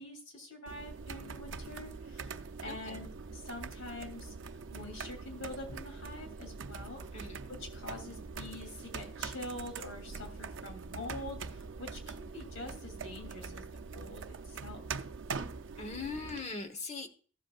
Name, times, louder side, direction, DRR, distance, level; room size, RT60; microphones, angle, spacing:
voice 1, 0.0-7.3 7.7-13.7 13.9-14.8, left 2 dB, 80° left, 4 dB, 3.0 m, -45 dB
sound 1, 0.7-16.4, right 4 dB, 65° right, 0.6 m, -43 dB
voice 2, 2.7-3.0 7.1-7.4 15.8-17.1, left 4 dB, 35° left, 7 dB, 1.1 m, -40 dB
15.0 x 7.7 x 2.4 m, 0.43 s
head